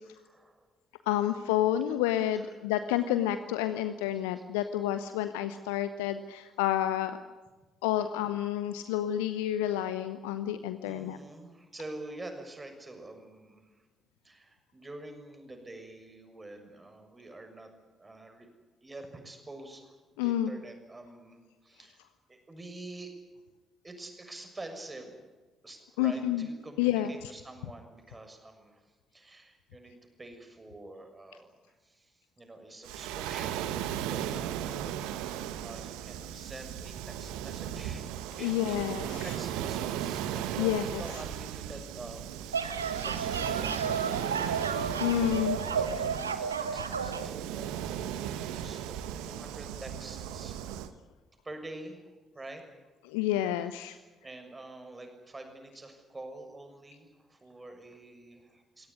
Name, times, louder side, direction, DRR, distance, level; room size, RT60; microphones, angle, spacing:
voice 1, 0.2-0.7 2.3-2.5 4.4-4.7 10.8-13.8 14.2-17.7 18.0-18.5 18.8-20.0 20.2-22.0 22.3-23.1 23.8-25.2 25.6-34.8 35.1-38.1 38.4-38.9 39.2-45.1 45.6-48.9 49.2-50.6 51.4-52.6 54.2-58.9, right 2 dB, 20° right, 5 dB, 6.5 m, -47 dB
voice 2, 1.1-7.2 7.8-11.2 20.2-20.6 26.0-26.5 26.8-27.1 38.4-39.3 40.6-40.8 45.0-45.6 53.0-54.0, left 12 dB, 70° left, 11 dB, 0.8 m, -29 dB
Waves surf, 32.8-50.9, right 10 dB, 65° right, 1.2 m, -36 dB
sound 1, 42.3-47.3, right 6 dB, 85° right, 1.0 m, -32 dB
24.5 x 17.5 x 9.7 m, 1.2 s
figure-of-eight pair, 45°, 0 cm